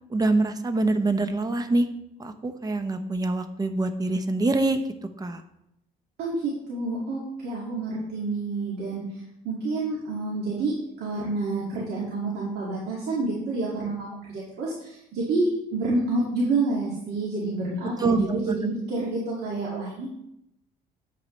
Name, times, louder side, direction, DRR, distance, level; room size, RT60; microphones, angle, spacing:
voice 1, 0.1-1.9 2.2-4.8 5.2-5.4 18.0-18.6, right 2 dB, 20° right, 9 dB, 0.8 m, -25 dB
voice 2, 6.2-9.0 9.4-20.3, right 2 dB, 70° right, -5 dB, 2.2 m, -28 dB
8.4 x 8.2 x 3.2 m, 0.81 s
cardioid pair, 110°, 17 cm